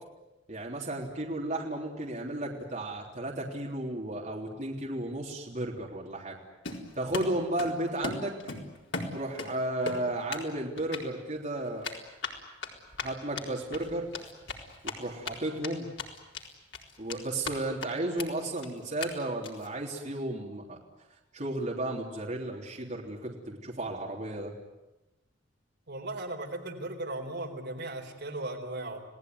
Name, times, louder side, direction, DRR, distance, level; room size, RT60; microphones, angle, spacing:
voice 1, 0.5-6.4 7.0-8.3 9.1-11.9 13.0-14.1 14.8-15.9 17.0-20.8 21.3-24.5, right 1 dB, 40° right, -2 dB, 3.5 m, -34 dB
Run, 6.6-7.8 8.0-9.5 9.9-10.5 10.8-11.0 11.8-15.3 15.6-15.7 16.0-16.5 16.7-17.5 17.8-17.9 18.2-18.3 18.6-18.7 19.0-19.1 19.4-19.7, left 3 dB, 65° left, 4.2 m, -36 dB
voice 2, 25.9-29.0, right 2 dB, 60° right, 4 dB, 3.9 m, -37 dB
30.0 x 18.5 x 9.5 m, 1.0 s
head